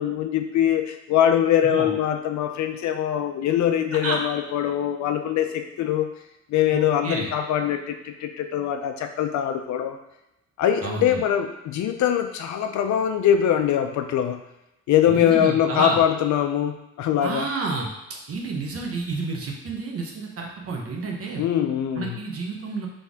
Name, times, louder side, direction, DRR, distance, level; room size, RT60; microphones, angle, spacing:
voice 1, 0.0-6.1 6.5-10.0 10.6-14.4 14.9-17.5 21.4-22.2, left 10 dB, 70° left, 7 dB, 0.5 m, -23 dB
voice 2, 6.7-7.3 10.8-11.2 15.1-16.0 17.2-21.4 21.9-22.9, right 3 dB, 50° right, 0 dB, 0.9 m, -30 dB
4.1 x 3.3 x 3.5 m, 0.91 s
cardioid pair, 90°, 30 cm